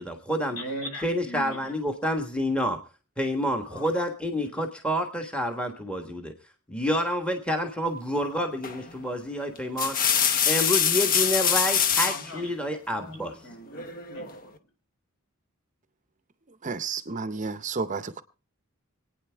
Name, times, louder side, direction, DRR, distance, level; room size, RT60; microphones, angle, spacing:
voice 1, 0.0-0.6 1.0-2.8 3.2-6.3 6.7-10.0 10.4-13.3, equal, 5° left, 1.3 m, -28 dB
voice 2, 0.6-1.6 3.6-3.9 4.3-4.5 12.0-12.5 12.9-14.5, equal, 65° left, 4.8 m, -39 dB
sound 1, 8.6-8.9 9.5-12.3 13.7-14.4, left 8 dB, 40° left, 0.8 m, -24 dB
voice 3, 16.6-18.2, right 4 dB, 35° right, 0.6 m, -31 dB
26.5 x 9.3 x 3.4 m
head